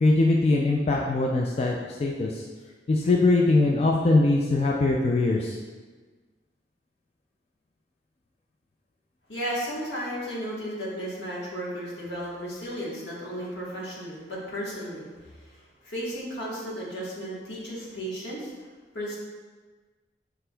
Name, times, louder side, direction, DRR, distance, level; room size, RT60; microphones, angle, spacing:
voice 1, 0.0-2.4 2.9-5.6, left 2 dB, 35° left, -1 dB, 0.3 m, -22 dB
voice 2, 9.3-18.5 18.9-19.2, equal, 80° left, -5 dB, 1.2 m, -34 dB
6.0 x 3.3 x 2.2 m, 1.4 s
head